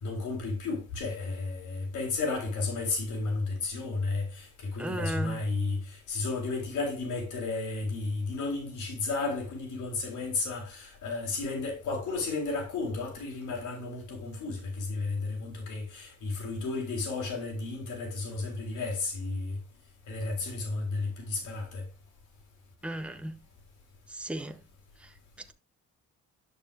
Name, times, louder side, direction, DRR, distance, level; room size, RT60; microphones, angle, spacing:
voice 1, 0.0-19.6 20.1-21.8, left 3 dB, 85° left, 3.9 m, -33 dB
voice 2, 4.8-5.4 22.8-23.4 24.1-24.6, right 1 dB, 5° right, 0.9 m, -34 dB
11.0 x 6.8 x 2.6 m
cardioid pair, 90°, 30 cm